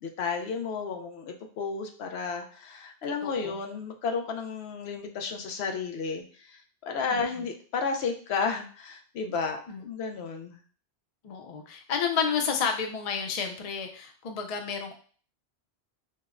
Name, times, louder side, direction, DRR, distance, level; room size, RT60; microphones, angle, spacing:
voice 1, 0.0-9.6 9.8-10.6, left 5 dB, 85° left, 4 dB, 0.9 m, -32 dB
voice 2, 3.2-3.6 7.1-7.2 9.7-9.9 11.2-14.9, left 6 dB, 50° left, 4 dB, 0.5 m, -31 dB
4.5 x 2.1 x 2.4 m, 0.42 s
omnidirectional pair, 1.1 m